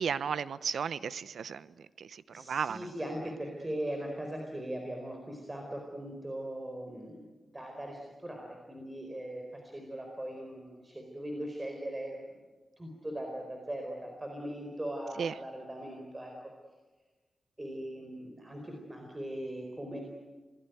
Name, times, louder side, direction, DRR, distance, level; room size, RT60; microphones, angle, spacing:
voice 1, 0.0-1.7 2.0-2.9 15.2-15.3, right 7 dB, 85° right, 16 dB, 0.8 m, -34 dB
voice 2, 2.3-12.4 12.8-16.3 17.6-20.0, right 1 dB, 20° right, 2 dB, 4.5 m, -40 dB
27.0 x 19.5 x 9.4 m, 1.2 s
wide cardioid pair, 125°, 0 cm